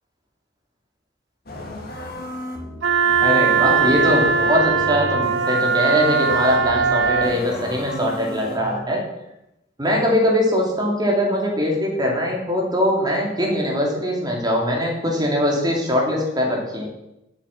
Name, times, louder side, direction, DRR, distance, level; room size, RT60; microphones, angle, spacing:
sound 1, 1.5-8.8, left 1 dB, 55° left, 2.1 m, -34 dB
Wind instrument woodwind instrument, 2.8-7.4, right 6 dB, 80° right, 1.0 m, -20 dB
voice 1, 3.2-9.0 9.8-16.9, equal, 20° right, -1 dB, 3.1 m, -21 dB
8.4 x 8.1 x 7.8 m, 0.88 s
head